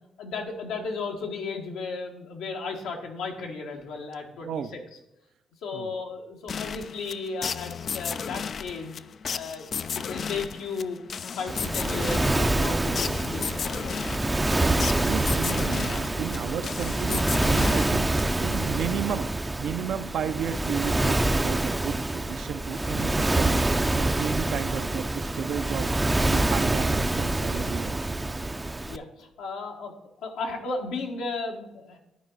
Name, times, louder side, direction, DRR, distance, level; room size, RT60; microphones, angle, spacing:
voice 1, 0.2-4.8 5.6-9.0 9.3-9.7 9.9-11.0 11.4-14.0 28.9-29.9 30.2-32.0, left 4 dB, 90° left, 1 dB, 1.7 m, -34 dB
voice 2, 4.4-4.7 5.7-5.9 15.0-25.9 26.3-28.0, right 8 dB, 70° right, 9 dB, 0.6 m, -33 dB
sound 1, 6.5-18.6, left 6 dB, 50° left, 0.3 m, -34 dB
Waves surf, 11.5-29.0, right 2 dB, 15° right, 0.5 m, -26 dB
11.5 x 4.8 x 4.1 m, 0.89 s
cardioid pair, 90°, 0 cm